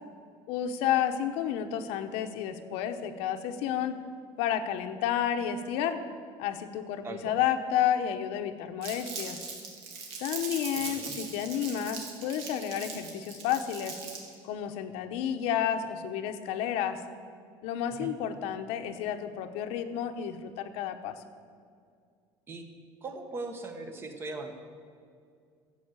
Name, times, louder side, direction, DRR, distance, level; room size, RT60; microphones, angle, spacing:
voice 1, 0.5-3.9 4.4-6.0 6.4-9.4 10.2-14.0 14.4-17.0 17.6-21.2, left 9 dB, 70° left, 7 dB, 1.0 m, -31 dB
voice 2, 7.0-7.4 10.7-11.2 17.9-18.1 22.5-22.7 23.0-24.5, right 3 dB, 20° right, 6 dB, 1.2 m, -39 dB
Crumpling crinkling, 8.8-14.3, right 5 dB, 65° right, 2.9 m, -40 dB
13.5 x 8.1 x 8.2 m, 2.2 s
cardioid pair, 175°, 11 cm